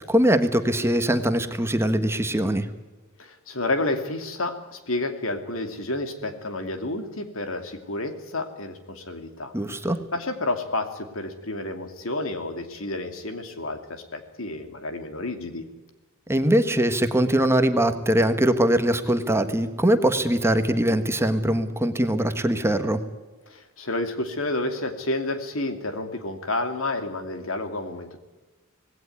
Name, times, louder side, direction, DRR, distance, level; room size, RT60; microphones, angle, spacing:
voice 1, 0.0-2.6 9.5-10.0 16.3-23.0, right 1 dB, 10° right, 9 dB, 1.3 m, -22 dB
voice 2, 3.2-9.5 10.1-15.7 23.5-28.2, left 2 dB, 70° left, 7 dB, 2.6 m, -30 dB
19.0 x 17.0 x 9.5 m, 1.2 s
head